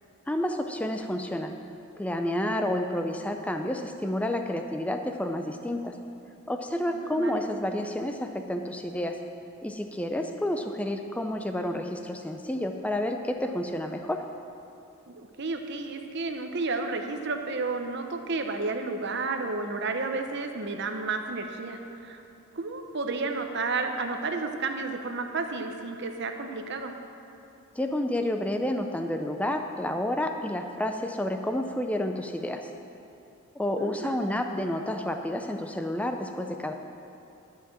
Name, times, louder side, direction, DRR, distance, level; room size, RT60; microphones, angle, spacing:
voice 1, 0.3-1.6 2.0-6.0 6.5-9.2 9.6-14.2 27.7-32.7 33.6-36.7, left 1 dB, 5° left, 5 dB, 0.4 m, -30 dB
voice 2, 6.9-7.4 15.1-22.2 22.5-26.9 33.8-34.2, right 3 dB, 50° right, 5 dB, 0.8 m, -32 dB
12.0 x 5.9 x 7.4 m, 2.8 s
head